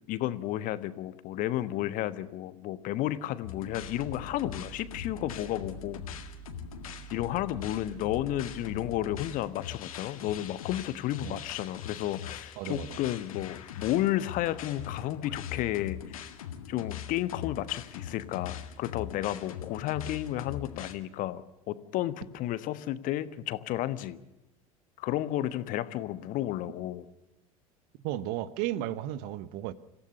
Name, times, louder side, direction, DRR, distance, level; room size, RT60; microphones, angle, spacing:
voice 1, 0.1-6.0 7.1-16.3 16.7-24.2 25.0-27.1, left 14 dB, 45° left, 1.3 m, -32 dB
sound 1, 3.4-20.9, left 9 dB, 70° left, 1.9 m, -42 dB
sound 2, 3.6-9.4, right 8 dB, 85° right, 6.2 m, -48 dB
voice 2, 12.6-13.0 28.0-29.7, right 13 dB, 50° right, 1.2 m, -34 dB
26.5 x 16.0 x 6.8 m
figure-of-eight pair, 70°, 19 cm